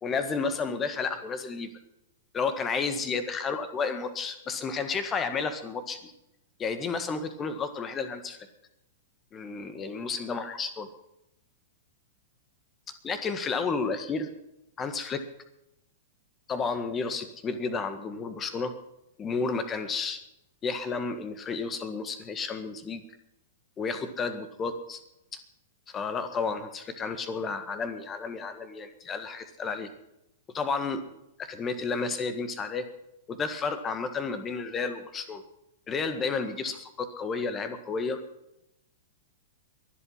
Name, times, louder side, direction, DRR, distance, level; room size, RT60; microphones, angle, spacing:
voice 1, 0.0-1.7 2.3-6.1 6.6-8.5 9.3-10.9 13.0-14.3 14.8-15.2 16.5-18.7 19.2-20.2 20.6-23.0 23.8-25.0 25.9-29.9 30.5-31.0 31.4-32.8 33.3-35.4 35.9-38.2, left 4 dB, 20° left, 9 dB, 1.7 m, -31 dB
22.5 x 8.5 x 5.7 m, 0.85 s
figure-of-eight pair, 100°, 0 cm